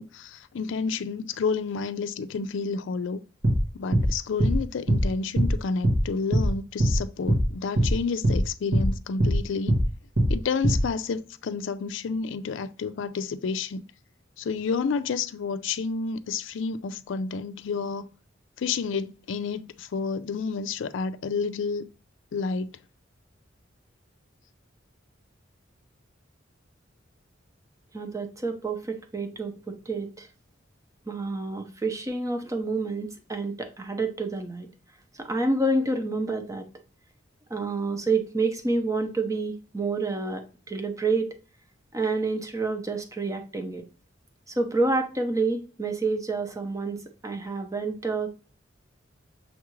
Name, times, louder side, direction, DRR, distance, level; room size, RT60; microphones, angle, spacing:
voice 1, 0.0-3.2 3.7-9.8 10.3-13.8 14.4-18.1 18.6-21.9 22.3-22.8, left 5 dB, 70° left, 0.4 m, -30 dB
sound 1, 3.4-3.6 3.9-4.1 4.4-4.6 4.9-5.0 5.3-5.5 5.8-6.0 6.3-6.5 6.8-7.0 7.3-7.4 7.8-7.9 8.2-8.4 8.7-8.9 9.2-9.4 9.7-9.8 10.2-10.3 10.6-10.8, right 1 dB, 90° right, 1.1 m, -21 dB
voice 2, 27.9-30.3 31.1-34.7 35.1-36.7 37.5-40.4 40.7-41.4 41.9-43.8 44.5-48.3, right 3 dB, 15° right, 0.6 m, -28 dB
6.4 x 2.4 x 3.0 m
head